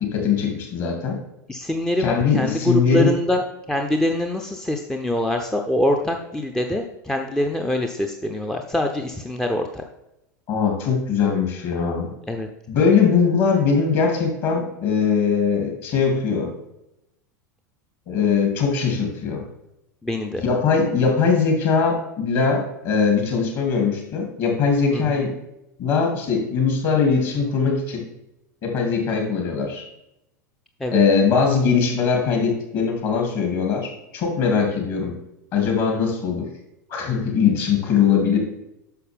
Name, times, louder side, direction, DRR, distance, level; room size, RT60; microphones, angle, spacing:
voice 1, 0.1-1.2 2.0-3.1 10.5-12.1 12.7-16.5 18.1-19.4 20.4-25.3 25.8-28.0 28.6-29.8 30.9-35.1 35.5-36.5 36.9-38.4, left 6 dB, 45° left, 1 dB, 2.8 m, -21 dB
voice 2, 1.5-9.8 12.3-12.5 20.0-20.4 24.9-25.2 30.8-31.0, left 1 dB, 5° left, 3 dB, 0.6 m, -24 dB
10.0 x 6.4 x 3.6 m, 0.88 s
figure-of-eight pair, 85°, 10 cm